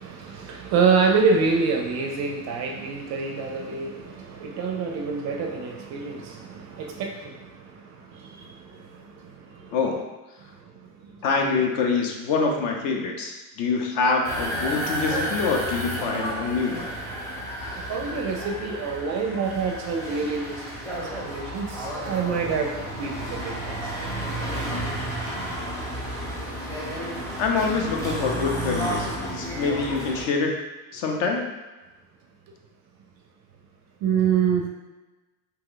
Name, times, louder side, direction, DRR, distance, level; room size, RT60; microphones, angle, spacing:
voice 1, 0.0-9.7 10.5-11.2 17.8-24.1 34.0-34.7, right 5 dB, 40° right, 2 dB, 0.4 m, -27 dB
voice 2, 9.7-10.1 11.2-16.9 27.4-30.5 30.9-31.5, left 4 dB, 55° left, 2 dB, 0.7 m, -25 dB
sound 1, 14.2-30.2, right 1 dB, 5° left, 0.7 m, -32 dB
2.8 x 2.2 x 3.7 m, 1.1 s
supercardioid pair, 110°, 45 cm